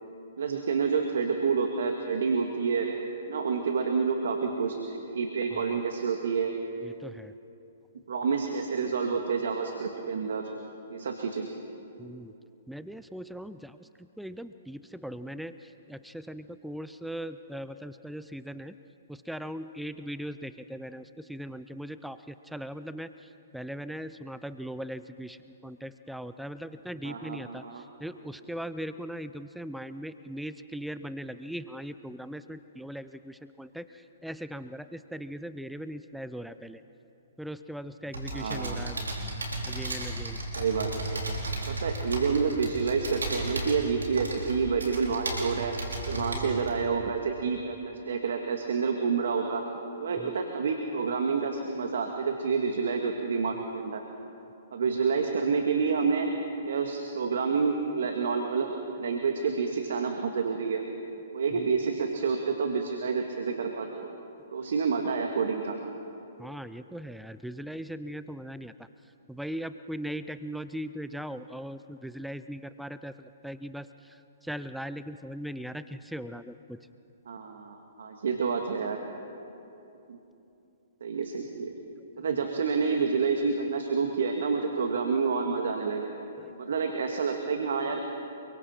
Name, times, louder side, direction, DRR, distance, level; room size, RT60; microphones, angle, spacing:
voice 1, 0.4-3.0 3.3-6.6 8.1-10.4 10.9-11.5 27.0-27.8 38.3-39.1 40.6-41.4 41.7-45.7 46.1-49.6 50.0-54.0 54.7-56.3 56.7-60.8 61.3-64.1 64.5-65.8 77.3-79.0 80.1-80.2 81.0-81.7 82.2-86.1 86.6-88.0, right 5 dB, 70° right, 4 dB, 1.8 m, -28 dB
voice 2, 12.0-12.3 12.7-13.7 14.2-15.6 15.9-18.7 19.3-21.0 21.3-22.2 22.5-23.1 23.5-25.4 25.6-27.6 28.0-33.8 34.2-36.8 37.4-39.0 39.7-40.4 50.2-50.3 66.4-68.7 69.3-73.1 73.4-73.9 74.5-75.8 76.1-76.5, equal, ahead, 12 dB, 0.5 m, -39 dB
sound 1, 38.1-46.8, right 2 dB, 90° right, 4.4 m, -34 dB
29.5 x 23.0 x 4.4 m, 2.8 s
hypercardioid pair, 125°, 0 cm